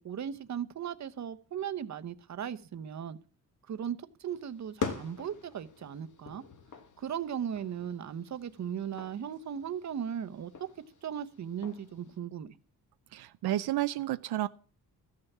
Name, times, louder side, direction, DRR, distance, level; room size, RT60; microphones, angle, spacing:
voice 1, 0.0-3.2 3.7-6.4 7.0-10.7 11.0-12.6, right 8 dB, 45° right, 0.9 m, -37 dB
sound 1, 4.3-12.2, left 5 dB, 50° left, 1.6 m, -44 dB
voice 2, 13.1-14.5, right 14 dB, 85° right, 0.6 m, -31 dB
14.0 x 6.7 x 7.2 m
cardioid pair, 135°, 38 cm